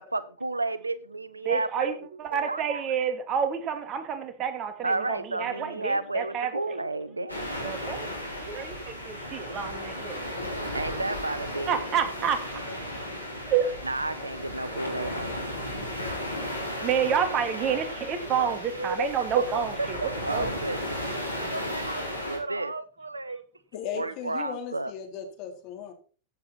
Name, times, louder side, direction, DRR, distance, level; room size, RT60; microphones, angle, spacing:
voice 1, 0.1-2.8 4.8-7.8 8.2-8.5 10.4-11.8 12.7-13.1 13.8-15.5 16.2-16.3 18.2-23.4 23.9-24.9, right 2 dB, 80° right, 0.8 m, -33 dB
voice 2, 1.4-6.8 7.6-8.1 8.4-10.3 11.7-12.6 12.9-13.1 13.5-13.7 16.8-20.5, right 8 dB, 35° right, 2.5 m, -29 dB
sound 1, 7.3-22.4, left 1 dB, 85° left, 4.3 m, -35 dB
voice 3, 23.7-25.9, left 8 dB, 45° left, 3.9 m, -37 dB
15.5 x 8.4 x 4.3 m
figure-of-eight pair, 90°, 0 cm